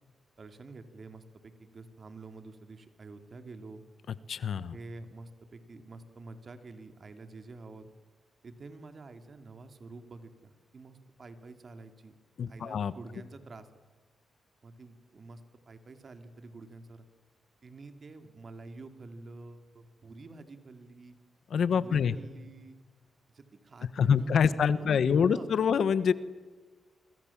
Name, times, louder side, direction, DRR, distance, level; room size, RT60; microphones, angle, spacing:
voice 1, 0.4-3.8 4.7-7.9 8.4-12.1 12.5-13.7 14.6-15.4 15.7-17.1 17.6-21.2 21.7-22.8 23.3-25.5, right 3 dB, 45° right, 8 dB, 2.9 m, -48 dB
voice 2, 4.3-4.8 12.4-12.9 21.5-22.1 24.0-26.1, left 7 dB, 70° left, 16 dB, 1.1 m, -25 dB
28.0 x 25.5 x 7.3 m, 1.4 s
cardioid pair, 80°, 0 cm